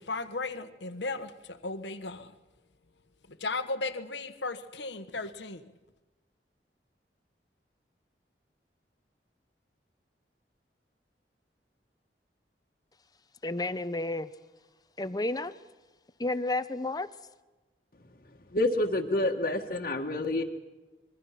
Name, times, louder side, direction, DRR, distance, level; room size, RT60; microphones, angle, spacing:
voice 1, 0.0-2.3 3.3-5.7, left 3 dB, 85° left, 9 dB, 1.3 m, -36 dB
voice 2, 13.4-14.3 15.0-15.6 16.2-17.1, left 2 dB, 20° left, 12 dB, 0.8 m, -31 dB
voice 3, 18.5-20.4, left 1 dB, 55° left, -2 dB, 1.6 m, -28 dB
26.5 x 22.5 x 5.8 m, 1.2 s
head